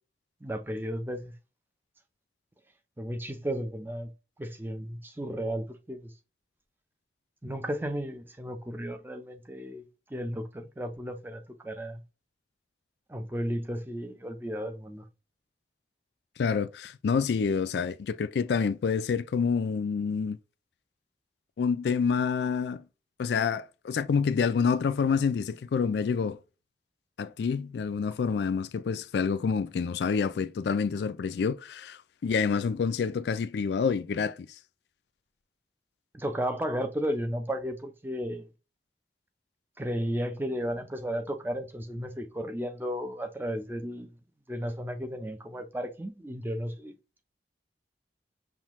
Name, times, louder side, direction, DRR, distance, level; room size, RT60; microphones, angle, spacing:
voice 1, 0.4-1.3 3.0-4.1 4.4-6.1 7.4-12.0 13.1-15.1 36.1-38.5 39.8-44.2 44.5-46.9, equal, 10° right, 0.5 m, -34 dB
voice 2, 16.4-20.4 21.6-22.8 23.2-26.4 27.2-34.5, left 6 dB, 75° left, 0.3 m, -28 dB
5.6 x 2.2 x 3.0 m
head